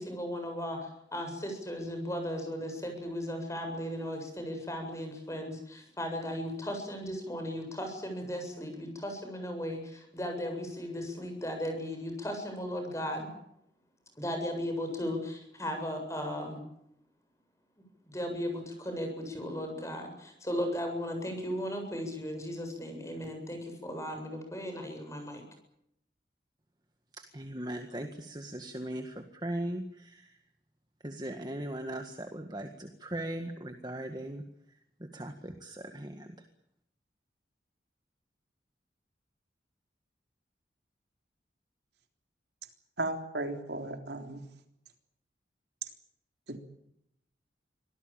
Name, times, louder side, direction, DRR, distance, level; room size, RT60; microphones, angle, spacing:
voice 1, 0.0-13.3 14.2-16.6 18.1-25.4, equal, 15° left, 5 dB, 7.7 m, -36 dB
voice 2, 27.2-30.4 31.0-34.4 35.0-36.3, right 1 dB, 25° right, 6 dB, 1.8 m, -39 dB
voice 3, 43.0-44.4 45.8-45.9 46.5-46.6, right 2 dB, 75° right, 5 dB, 3.6 m, -35 dB
26.0 x 18.0 x 9.0 m, 0.75 s
head